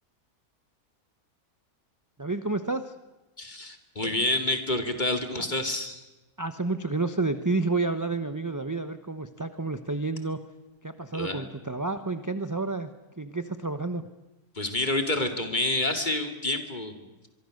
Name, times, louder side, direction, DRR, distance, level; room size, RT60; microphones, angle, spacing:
voice 1, 2.2-2.9 6.4-10.4 10.8-12.9 13.2-14.1, right 3 dB, 15° right, 8 dB, 0.8 m, -30 dB
voice 2, 3.4-6.0 11.1-11.4 14.5-17.3, left 2 dB, 30° left, 5 dB, 2.6 m, -28 dB
24.5 x 24.0 x 6.5 m, 1.1 s
omnidirectional pair, 1.6 m